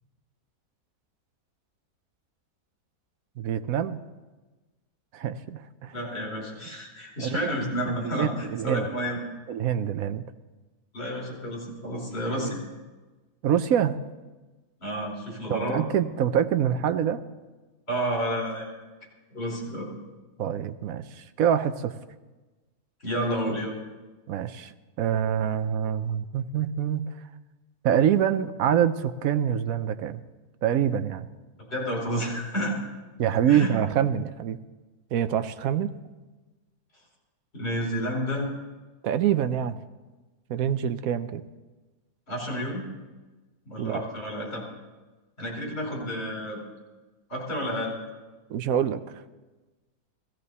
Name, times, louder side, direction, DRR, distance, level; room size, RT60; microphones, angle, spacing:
voice 1, 3.4-4.0 5.1-6.1 7.2-7.6 8.0-8.9 9.5-10.2 13.4-14.0 15.5-17.2 20.4-22.0 24.3-27.2 27.8-30.2 30.6-31.3 33.2-34.6 35.1-35.9 39.0-39.8 40.5-41.4 43.8-44.0 48.5-49.0, right 9 dB, 70° right, 11 dB, 1.0 m, -25 dB
voice 2, 5.9-9.2 10.9-12.6 14.8-15.8 17.9-18.7 19.3-19.9 23.0-23.7 31.7-32.8 33.5-33.7 37.5-38.5 42.3-42.8 43.7-44.6 45.4-46.6 47.3-48.0, equal, 40° left, -3 dB, 4.8 m, -30 dB
17.0 x 14.5 x 4.1 m, 1.2 s
omnidirectional pair, 1.7 m